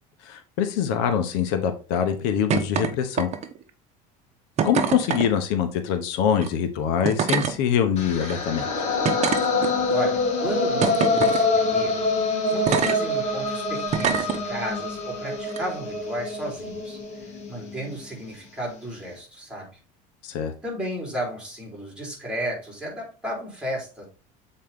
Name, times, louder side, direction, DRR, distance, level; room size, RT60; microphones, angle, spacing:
voice 1, 0.2-3.3 4.6-8.7 20.2-20.5, left 8 dB, 75° left, 1.1 m, -24 dB
sound 1, 2.5-2.9 3.2-3.6 4.6-5.3 6.3-6.5 7.0-7.5 8.2-8.3 9.0-9.9 10.8-11.4 12.7-13.0 13.9-14.4 15.5-15.6, right 7 dB, 40° right, 1.0 m, -24 dB
sound 2, 8.0-18.0, left 3 dB, 40° left, 2.2 m, -25 dB
voice 2, 9.9-12.0 12.5-19.8 20.6-24.1, equal, 5° right, 3.9 m, -33 dB
7.7 x 4.3 x 3.6 m
cardioid pair, 130°, 18 cm